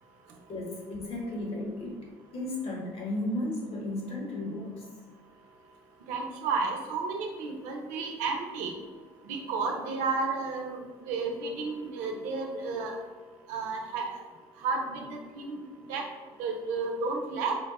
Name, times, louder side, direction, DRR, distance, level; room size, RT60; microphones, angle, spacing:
voice 1, 0.5-2.0 2.3-4.9, left 1 dB, 50° left, -1 dB, 1.5 m, -34 dB
voice 2, 6.1-8.7 9.2-13.0 13.5-14.2 14.6-15.6 15.9-16.1 16.4-17.5, right 4 dB, 75° right, 2 dB, 0.7 m, -32 dB
4.4 x 2.2 x 4.1 m, 1.4 s
hypercardioid pair, 65°, 13 cm